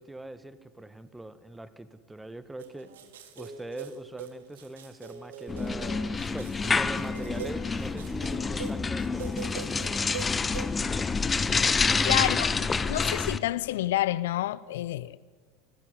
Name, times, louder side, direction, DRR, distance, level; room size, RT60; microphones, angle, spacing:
voice 1, 0.0-2.9 3.4-10.2 11.9-12.4, right 2 dB, 10° right, 1.8 m, -42 dB
sound 1, 2.6-10.8, right 7 dB, 70° right, 2.4 m, -42 dB
sound 2, 5.5-13.4, left 4 dB, 20° left, 1.1 m, -28 dB
voice 2, 12.1-12.5 12.8-15.2, left 14 dB, 65° left, 0.6 m, -28 dB
25.0 x 15.5 x 10.0 m
figure-of-eight pair, 75°, 0 cm